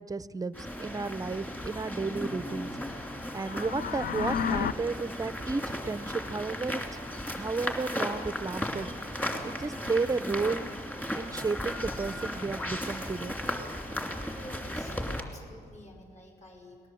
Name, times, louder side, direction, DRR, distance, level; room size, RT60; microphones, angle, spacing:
voice 1, 0.0-3.0 3.3-6.8 7.4-9.1 9.4-10.7 11.1-13.3, right 4 dB, 20° right, 16 dB, 0.6 m, -33 dB
sound 1, 0.5-15.2, left 1 dB, 10° left, 2.6 m, -36 dB
sound 2, 3.3-4.7, left 7 dB, 60° left, 0.8 m, -31 dB
voice 2, 14.0-16.9, left 1 dB, 40° left, 1 dB, 5.5 m, -50 dB
30.0 x 20.0 x 7.7 m, 2.2 s
wide cardioid pair, 130°, 18 cm